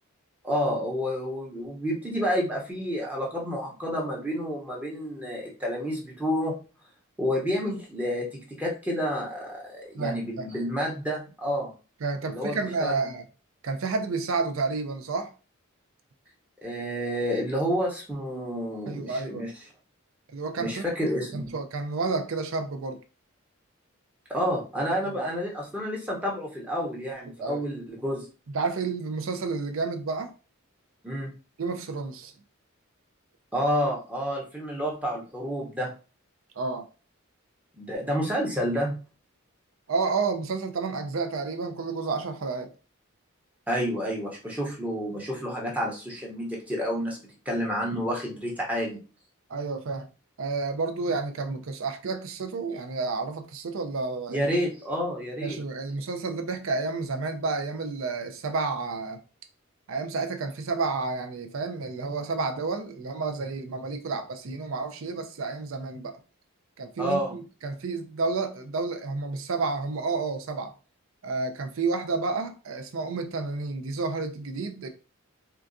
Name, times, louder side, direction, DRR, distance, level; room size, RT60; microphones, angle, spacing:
voice 1, 0.4-6.5 7.2-11.7 12.2-13.1 16.6-19.5 20.6-21.5 24.3-28.3 31.0-31.3 33.5-35.9 37.8-39.0 43.7-47.2 47.5-49.0 54.3-55.6 67.0-67.3, equal, 5° right, 0.7 m, -29 dB
voice 2, 9.9-10.5 12.0-13.3 13.6-15.3 18.9-19.4 20.3-20.9 21.3-23.0 25.0-25.3 27.4-27.7 28.5-30.3 31.6-32.3 36.6-36.9 39.9-42.7 47.9-48.0 49.5-50.1 50.4-54.5 55.4-59.2 59.9-66.2 66.8-70.7 71.2-74.9, right 4 dB, 65° right, 0.5 m, -30 dB
3.7 x 2.3 x 2.5 m
head